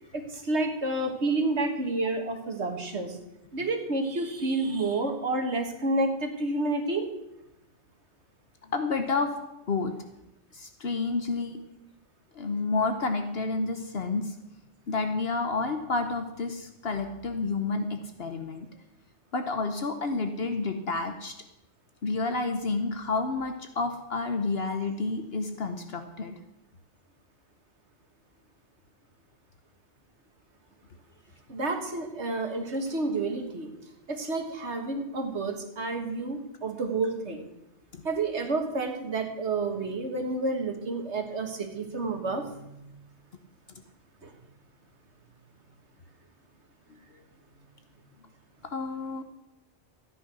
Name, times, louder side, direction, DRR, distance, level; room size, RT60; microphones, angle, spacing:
voice 1, 0.1-3.2 3.5-7.1 31.5-33.7 34.1-37.4 38.0-42.9 44.2-44.3, right 2 dB, 70° right, 5 dB, 1.9 m, -30 dB
voice 2, 8.6-9.3 9.7-9.9 10.5-11.6 12.3-14.4 14.9-18.7 19.3-21.3 22.0-26.3 37.9-38.0 48.6-49.2, left 3 dB, 60° left, 7 dB, 1.2 m, -30 dB
13.5 x 9.7 x 6.2 m, 0.87 s
omnidirectional pair, 1.2 m